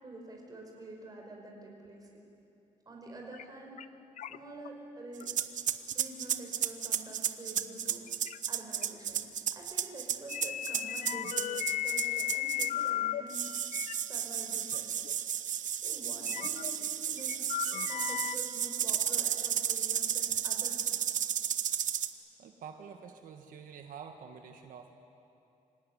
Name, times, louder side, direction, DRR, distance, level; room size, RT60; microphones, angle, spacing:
voice 1, 0.0-2.1 2.9-3.7 4.3-5.3 5.9-8.0 8.5-9.2 9.5-13.5 14.1-14.9 15.8-20.9, right 2 dB, 30° right, 0 dB, 5.2 m, -47 dB
sound 1, 3.3-3.4 3.8-3.9 4.2-4.7 5.2-5.4 5.9-6.0 7.6-7.7 8.1-8.4 8.8-8.9 10.3-13.2 13.6-13.9 14.7-14.8 15.0-15.1 16.3-16.7 17.2-18.4, left 12 dB, 65° left, 0.6 m, -35 dB
sound 2, 5.2-12.9 13.3-22.1, right 9 dB, 70° right, 0.9 m, -33 dB
voice 2, 22.4-24.9, right 7 dB, 90° right, 5 dB, 1.5 m, -47 dB
26.0 x 16.5 x 10.0 m, 2.7 s
wide cardioid pair, 150°, 14 cm